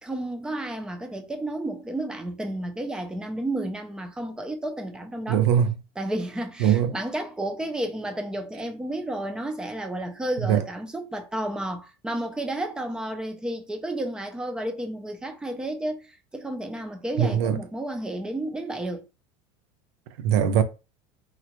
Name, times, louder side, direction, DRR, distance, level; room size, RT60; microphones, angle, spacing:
voice 1, 0.0-5.4 6.0-19.0, right 1 dB, 5° right, 0.3 m, -32 dB
voice 2, 5.3-5.8 6.6-6.9 10.5-10.6 17.2-17.6 20.2-20.6, right 9 dB, 85° right, 0.5 m, -21 dB
3.6 x 2.1 x 2.9 m
cardioid pair, 170°, 14 cm